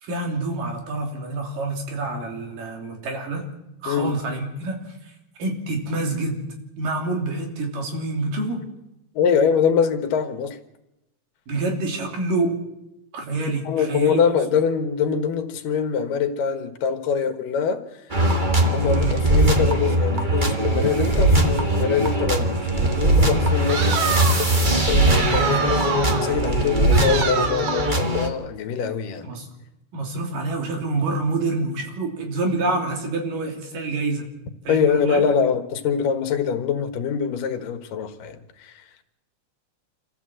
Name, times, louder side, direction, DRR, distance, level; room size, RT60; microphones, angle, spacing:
voice 1, 0.0-3.5 3.8-5.1 5.4-6.4 6.8-8.6 11.5-12.6 13.1-14.2 18.8-19.2 29.2-29.5 29.9-34.3 34.6-35.2, right 2 dB, 85° right, 4.7 m, -27 dB
voice 2, 9.1-10.6 13.6-17.9 18.7-24.0 24.9-29.3 34.7-38.8, left 6 dB, 90° left, 3.1 m, -24 dB
sound 1, 18.1-28.3, right 1 dB, 25° right, 1.0 m, -20 dB
sound 2, 23.7-24.6 25.1-26.3 26.9-28.0, right 7 dB, 60° right, 2.5 m, -27 dB
27.0 x 14.5 x 7.8 m
omnidirectional pair, 3.7 m